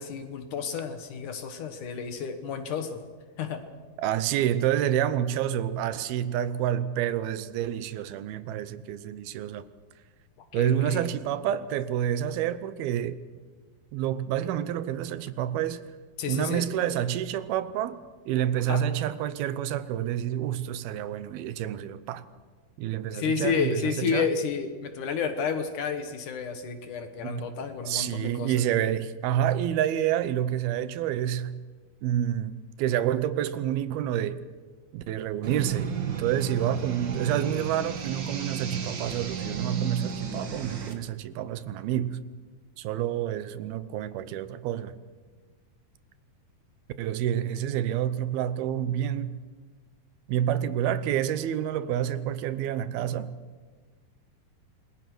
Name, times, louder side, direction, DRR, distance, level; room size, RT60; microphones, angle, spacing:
voice 1, 0.0-3.0 3.4-3.6 10.5-11.1 16.2-16.6 18.7-18.8 23.1-28.6, left 6 dB, 60° left, 2.6 m, -31 dB
voice 2, 4.0-9.6 10.5-13.2 13.9-15.9 16.3-18.0 18.3-22.2 22.8-24.3 27.2-27.5 27.9-31.6 32.0-34.4 34.9-42.2 42.8-45.0 47.0-49.4 50.3-53.4, right 11 dB, 80° right, 2.7 m, -28 dB
sound 1, 35.4-40.9, right 6 dB, 45° right, 1.6 m, -34 dB
27.5 x 21.5 x 6.2 m
omnidirectional pair, 4.5 m